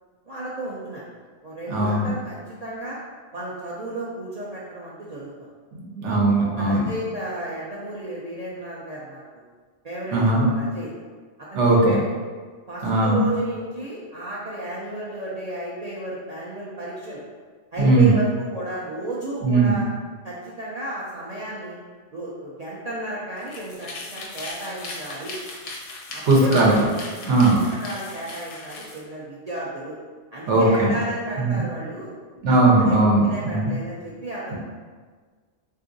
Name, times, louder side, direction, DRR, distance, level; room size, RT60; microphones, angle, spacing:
voice 1, 0.3-1.1 1.4-3.0 3.3-5.3 6.4-9.4 9.8-10.9 11.4-12.0 12.7-17.2 17.7-19.8 20.2-21.8 22.1-25.4 26.1-26.8 27.2-30.0 30.3-32.2 32.8-34.5, right 1 dB, 60° right, -7 dB, 0.4 m, -33 dB
voice 2, 1.7-2.1 5.7-6.9 10.1-10.5 11.5-12.0 12.8-13.2 17.8-18.1 19.4-19.8 26.3-26.7 27.1-27.6 30.5-30.9 31.4-31.6 32.4-33.7, right 2 dB, 85° right, -2 dB, 1.0 m, -18 dB
sound 1, 23.4-29.0, left 2 dB, 85° left, 1.0 m, -38 dB
3.6 x 2.5 x 2.5 m, 1.5 s
omnidirectional pair, 1.2 m